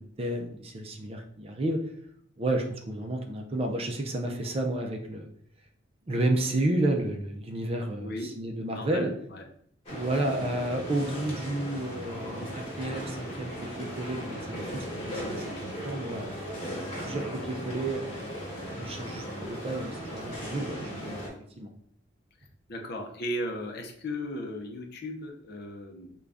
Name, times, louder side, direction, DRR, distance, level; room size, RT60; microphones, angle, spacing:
voice 1, 0.0-1.8 2.4-5.3 6.1-9.1 9.9-18.2 18.7-21.3 21.6-21.7, right 1 dB, 30° right, 3 dB, 0.4 m, -31 dB
voice 2, 8.0-8.3 8.7-9.4 22.7-26.1, left 1 dB, 55° left, 3 dB, 0.6 m, -36 dB
sound 1, 9.9-21.3, equal, 35° left, 1.2 m, -37 dB
3.8 x 2.3 x 3.4 m, 0.65 s
head